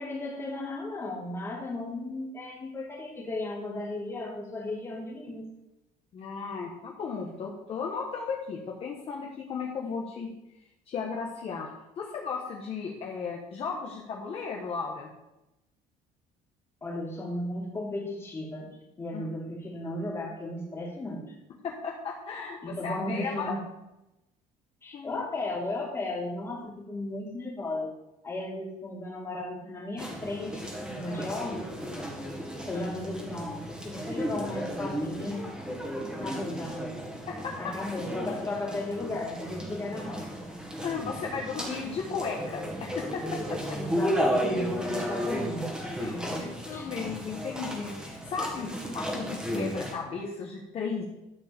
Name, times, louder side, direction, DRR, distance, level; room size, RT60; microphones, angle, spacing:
voice 1, 0.0-5.5 16.8-21.2 22.6-23.6 24.8-27.9 28.2-31.7 32.6-35.5 36.2-36.9 37.6-40.3 43.8-45.7 46.1-46.9, left 2 dB, 15° left, -2 dB, 2.7 m, -35 dB
voice 2, 6.1-10.3 10.9-11.7 12.0-15.1 19.1-19.3 21.6-23.5 24.9-25.3 31.1-31.2 37.3-37.5 40.8-42.6 42.9-43.8 46.0-51.0, left 5 dB, 40° left, -1 dB, 1.4 m, -35 dB
sound 1, 30.0-49.9, equal, 5° right, 2.0 m, -34 dB
12.5 x 4.7 x 7.1 m, 0.94 s
cardioid pair, 150°, 15 cm